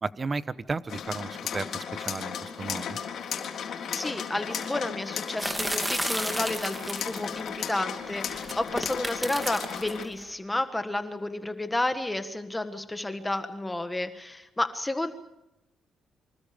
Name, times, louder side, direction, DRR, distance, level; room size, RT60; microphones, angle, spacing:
voice 1, 0.0-3.0, right 4 dB, 30° right, 15 dB, 1.1 m, -34 dB
sound 1, 0.9-10.0, left 7 dB, 65° left, 3.7 m, -35 dB
voice 2, 3.5-15.1, left 1 dB, 10° left, 8 dB, 1.6 m, -31 dB
sound 2, 5.4-7.5 8.3-10.0, right 1 dB, 10° right, 2.8 m, -32 dB
28.0 x 25.5 x 5.3 m, 0.92 s
cardioid pair, 90°, 0 cm